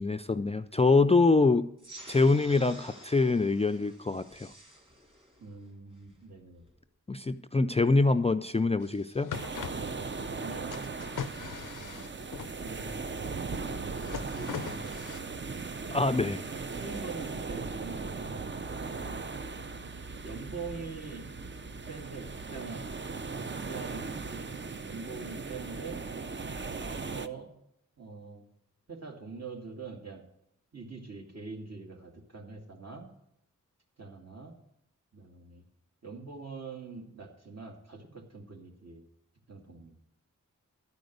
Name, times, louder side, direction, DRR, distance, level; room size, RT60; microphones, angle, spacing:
voice 1, 0.0-1.7 2.1-4.5 7.1-9.4 15.9-16.4, left 3 dB, 20° left, 9 dB, 0.4 m, -25 dB
sound 1, 1.8-6.8, right 1 dB, 15° right, 1.9 m, -51 dB
voice 2, 5.4-6.7 9.7-10.9 11.5-13.0 14.1-15.8 16.5-19.4 20.2-21.3 21.9-22.9 23.4-26.0 26.7-27.5 28.0-28.4 28.9-30.2 30.7-33.1 34.0-34.5 35.1-35.6 36.0-39.0 39.5-39.9, right 4 dB, 55° right, 1 dB, 2.3 m, -44 dB
sound 2, 8.8-8.9 9.1-9.7 10.7-12.5 13.7-15.2, left 8 dB, 90° left, 0.5 m, -40 dB
sound 3, 9.3-27.3, right 4 dB, 35° right, 0.6 m, -38 dB
12.0 x 5.2 x 7.9 m, 0.77 s
wide cardioid pair, 65°, 31 cm